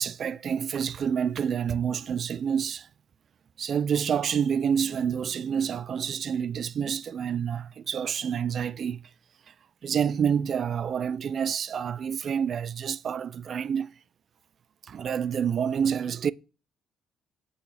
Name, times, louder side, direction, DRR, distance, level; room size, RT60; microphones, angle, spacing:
voice 1, 0.0-2.9 3.6-9.0 9.8-13.9 14.8-16.3, right 7 dB, 60° right, 0.3 m, -28 dB
6.3 x 6.2 x 3.4 m
supercardioid pair, 65°, 0 cm